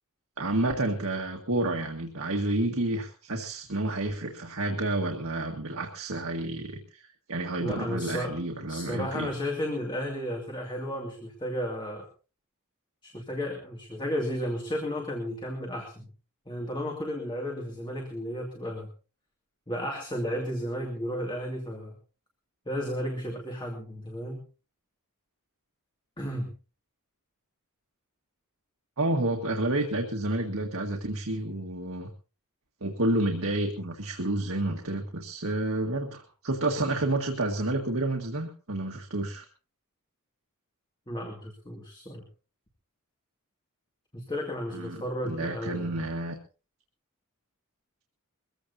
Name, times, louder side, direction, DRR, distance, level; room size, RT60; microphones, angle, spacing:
voice 1, 0.4-9.3 29.0-32.1 32.8-39.5 44.7-46.4, right 2 dB, 70° right, 3 dB, 1.8 m, -30 dB
voice 2, 7.6-8.4 8.7-12.1 13.0-16.1 16.5-18.9 19.7-21.9 22.7-24.4 26.2-26.5 41.1-42.2 44.1-46.0, equal, 20° left, 1 dB, 2.5 m, -33 dB
23.0 x 15.0 x 2.8 m, 0.36 s
head